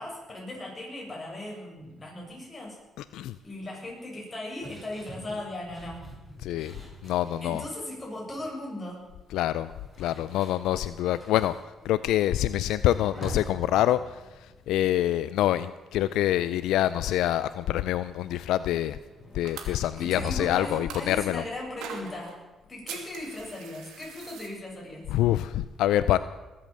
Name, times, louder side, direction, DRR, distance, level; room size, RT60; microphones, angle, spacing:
voice 1, 0.0-2.8 3.4-6.0 7.4-9.1 20.0-22.4 22.7-25.0, left 1 dB, 25° left, -2 dB, 7.7 m, -38 dB
voice 2, 3.0-3.4 6.4-6.7 7.0-7.7 9.3-9.7 10.0-11.5 11.8-19.0 19.3-21.4 25.1-26.2, left 13 dB, 90° left, 15 dB, 0.4 m, -26 dB
sound 1, 4.6-7.8 8.2-8.6 9.5-15.8 16.0-16.4 16.7-22.2, equal, ahead, 7.1 m, -46 dB
sound 2, 19.4-21.2 21.8-22.4 22.9-24.5, right 7 dB, 85° right, 2.5 m, -42 dB
21.0 x 8.7 x 7.5 m, 1.1 s
cardioid pair, 90°, 0 cm